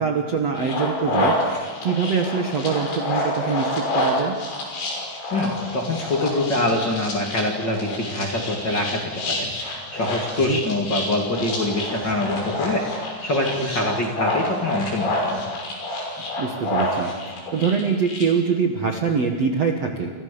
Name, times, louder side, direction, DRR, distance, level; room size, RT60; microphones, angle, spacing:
voice 1, 0.0-4.4 10.5-10.6 16.4-17.1 17.5-20.1, right 5 dB, 50° right, 3 dB, 2.1 m, -24 dB
sound 1, 0.6-18.2, left 1 dB, 85° left, 8.1 m, -28 dB
voice 2, 5.3-15.5, left 1 dB, 30° left, 1 dB, 2.7 m, -25 dB
29.5 x 29.0 x 7.0 m, 1.4 s
omnidirectional pair, 5.0 m